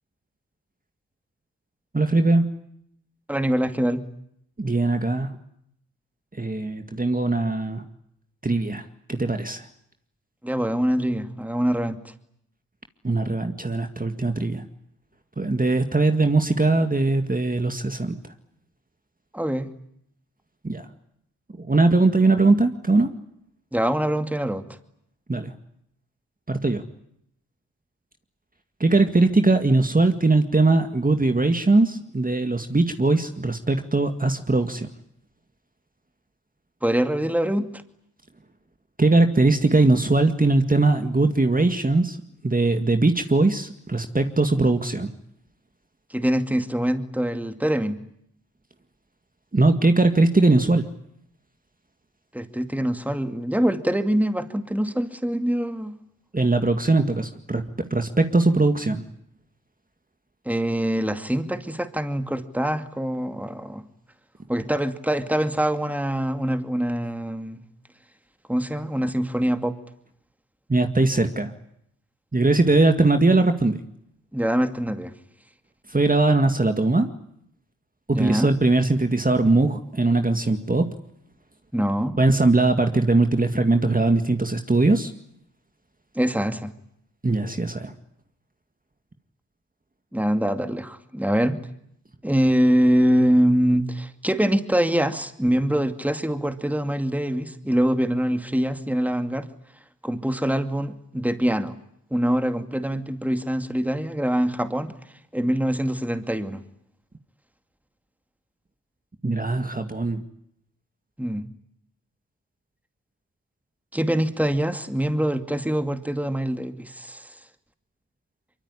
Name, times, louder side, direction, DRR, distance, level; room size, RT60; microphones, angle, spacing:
voice 1, 1.9-2.5 4.6-5.4 6.3-7.9 8.4-9.7 13.0-14.7 15.4-18.3 20.6-20.9 21.6-23.1 25.3-25.5 26.5-26.8 28.8-34.9 39.0-42.2 42.4-45.1 49.5-50.9 56.3-59.1 70.7-71.5 72.3-73.8 75.9-77.1 78.1-80.9 82.2-85.1 87.2-87.9 109.2-110.2, right 2 dB, 25° right, 6 dB, 2.0 m, -20 dB
voice 2, 3.3-4.0 10.4-12.1 19.3-19.7 23.7-24.7 36.8-37.7 46.1-48.0 52.3-55.9 60.5-63.8 64.5-67.6 68.5-69.8 74.3-75.1 78.1-78.5 81.7-82.2 86.1-86.7 90.1-91.6 92.2-99.5 100.0-101.8 102.1-104.9 105.3-106.6 111.2-111.4 113.9-117.3, equal, 5° right, 8 dB, 2.4 m, -24 dB
23.5 x 23.5 x 9.9 m, 0.73 s
cardioid pair, 50°, 35 cm